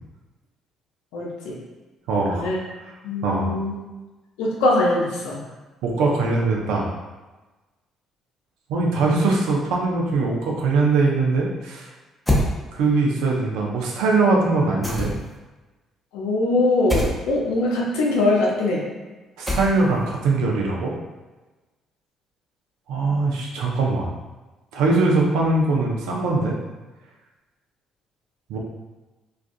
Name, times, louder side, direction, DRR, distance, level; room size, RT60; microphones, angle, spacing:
voice 1, 1.1-1.6 2.2-2.6 3.0-3.7 4.4-5.4 16.1-18.8, left 2 dB, 80° left, -2 dB, 0.5 m, -22 dB
voice 2, 2.1-2.5 3.2-3.5 5.8-6.9 8.7-11.9 12.7-15.1 19.4-20.9 22.9-24.1 24.7-26.6 28.5-28.6, right 3 dB, 75° right, -1 dB, 0.5 m, -21 dB
sound 1, 12.3-12.5 14.8-15.4 16.9-17.2 19.5-20.0, left 1 dB, 10° left, 0.7 m, -23 dB
2.4 x 2.3 x 2.5 m, 1.2 s
hypercardioid pair, 55°, 0 cm